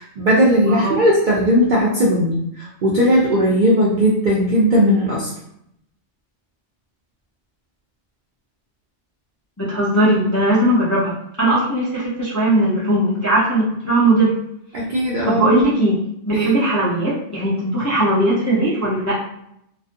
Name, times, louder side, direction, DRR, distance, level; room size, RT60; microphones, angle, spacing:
voice 1, 0.0-5.3 14.7-15.5 16.3-16.6, equal, 60° right, -4 dB, 0.5 m, -17 dB
voice 2, 0.6-1.0 9.6-14.4 15.3-16.0 16.3-19.1, right 1 dB, 20° left, -9 dB, 0.4 m, -18 dB
2.4 x 2.3 x 2.5 m, 0.76 s
omnidirectional pair, 1.2 m